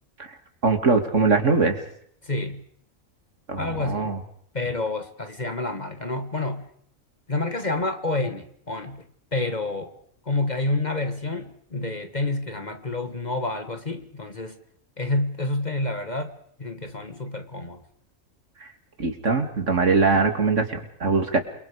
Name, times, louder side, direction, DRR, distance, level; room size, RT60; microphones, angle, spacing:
voice 1, 0.6-1.8 3.5-4.2 19.0-21.4, right 4 dB, 60° right, 6 dB, 2.9 m, -22 dB
voice 2, 2.2-2.6 3.6-4.1 4.5-6.7 7.3-9.1 9.3-9.9 10.2-14.6 15.0-17.8, left 2 dB, 30° left, 8 dB, 1.7 m, -28 dB
28.5 x 23.5 x 5.1 m, 0.65 s
omnidirectional pair, 1.5 m